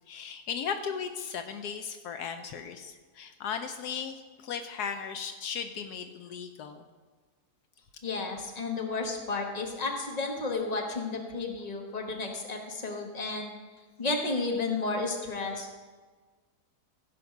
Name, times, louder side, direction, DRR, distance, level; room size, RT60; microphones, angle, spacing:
voice 1, 0.1-6.8, left 7 dB, 75° left, 8 dB, 1.2 m, -36 dB
voice 2, 8.0-13.5 14.0-15.7, left 3 dB, 25° left, 2 dB, 1.3 m, -32 dB
15.5 x 5.1 x 5.9 m, 1.4 s
omnidirectional pair, 1.7 m